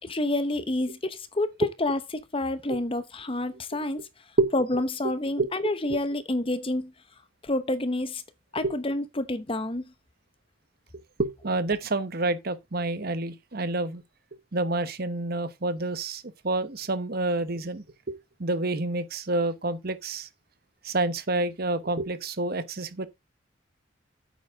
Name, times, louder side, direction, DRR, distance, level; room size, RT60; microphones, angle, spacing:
voice 1, 0.0-4.1 4.5-6.9 7.4-8.2 8.5-9.8, left 2 dB, 30° left, 1.0 m, -28 dB
voice 2, 11.2-14.0 14.5-20.3 20.8-23.1, right 2 dB, 50° right, 1.1 m, -28 dB
9.4 x 8.2 x 3.6 m
head